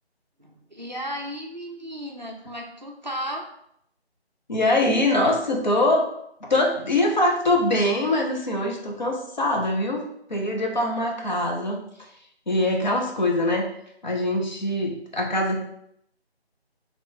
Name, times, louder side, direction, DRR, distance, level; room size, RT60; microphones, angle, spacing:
voice 1, 0.4-3.5, equal, 45° right, 0 dB, 0.4 m, -34 dB
voice 2, 4.5-6.1 6.4-11.8 12.5-13.7 14.0-15.7, left 1 dB, 45° left, 1 dB, 0.6 m, -23 dB
3.0 x 2.3 x 4.0 m, 0.73 s
figure-of-eight pair, 170°, 32 cm